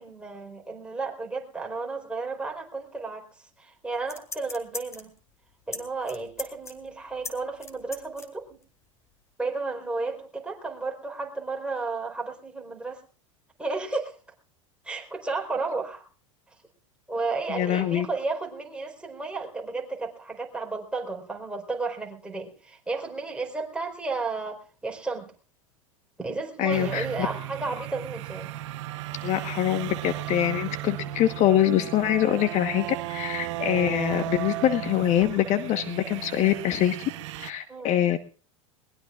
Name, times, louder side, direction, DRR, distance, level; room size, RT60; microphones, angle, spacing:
voice 1, 0.0-5.1 5.7-8.6 9.4-13.0 13.6-14.2 14.8-16.0 17.1-25.3 26.2-28.5 37.7-38.0, right 3 dB, 5° right, 1 dB, 4.3 m, -33 dB
sound 1, 4.0-5.2 5.7-5.8 6.1-8.3 8.6-8.7, left 3 dB, 15° left, 3.3 m, -38 dB
voice 2, 17.5-18.1 26.6-27.1 29.2-37.0 37.4-38.2, left 11 dB, 45° left, 9 dB, 1.3 m, -24 dB
sound 2, 26.7-37.5, right 16 dB, 65° right, 0.9 m, -35 dB
21.5 x 21.0 x 2.5 m, 0.39 s
hypercardioid pair, 95°, 17 cm